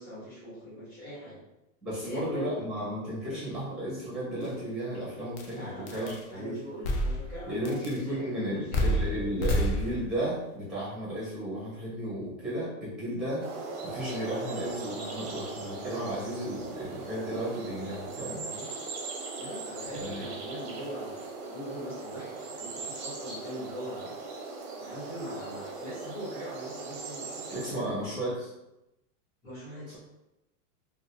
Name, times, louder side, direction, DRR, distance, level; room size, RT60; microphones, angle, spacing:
voice 1, 0.0-1.4 2.0-2.5 5.5-6.0 6.3-9.0 9.4-9.5 18.2-18.7 19.4-24.2 24.8-28.0 29.4-30.0, equal, 20° left, -10 dB, 1.4 m, -41 dB
voice 2, 1.8-6.6 7.5-13.4 13.8-18.4 20.0-20.2 27.5-28.5, right 1 dB, ahead, -8 dB, 0.8 m, -34 dB
sound 1, 4.4-4.5 5.4-5.5 5.9-6.2 6.8-7.4 7.7-8.0 8.7-10.2, equal, 55° left, 0.5 m, -28 dB
sound 2, 13.4-27.7, right 3 dB, 45° right, 0.6 m, -39 dB
2.6 x 2.2 x 2.8 m, 0.92 s
supercardioid pair, 170°, 44 cm